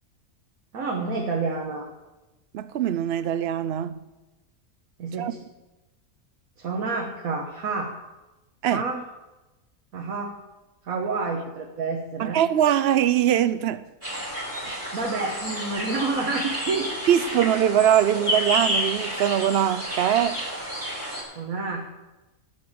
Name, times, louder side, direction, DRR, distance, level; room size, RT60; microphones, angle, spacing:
voice 1, 0.7-1.9 5.0-5.4 6.6-7.9 8.7-9.0 9.9-10.4 10.8-12.4 14.6-16.9 21.3-21.8, right 3 dB, 85° right, 1.6 m, -29 dB
voice 2, 2.5-4.0 5.2-5.3 8.6-8.8 12.2-13.8 14.7-14.8 17.1-20.4, right 10 dB, 60° right, 0.7 m, -22 dB
sound 1, 14.0-21.2, equal, 10° right, 4.7 m, -30 dB
11.5 x 6.3 x 8.6 m
omnidirectional pair, 1.4 m